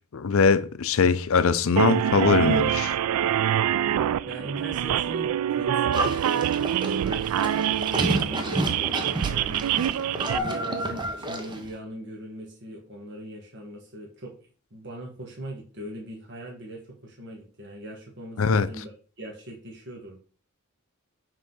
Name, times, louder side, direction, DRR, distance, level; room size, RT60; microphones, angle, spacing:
voice 1, 0.0-3.0 18.4-18.7, left 5 dB, 65° left, 0.5 m, -22 dB
sound 1, 1.8-10.4, right 10 dB, 85° right, 0.3 m, -25 dB
voice 2, 4.3-7.6 8.1-9.7 10.2-14.3 14.7-18.4 18.7-18.9 19.2-20.2, right 1 dB, 50° right, 1.4 m, -39 dB
Livestock farm animals working animals, 5.9-11.7, right 1 dB, 20° right, 0.8 m, -30 dB
5.7 x 3.7 x 5.5 m
head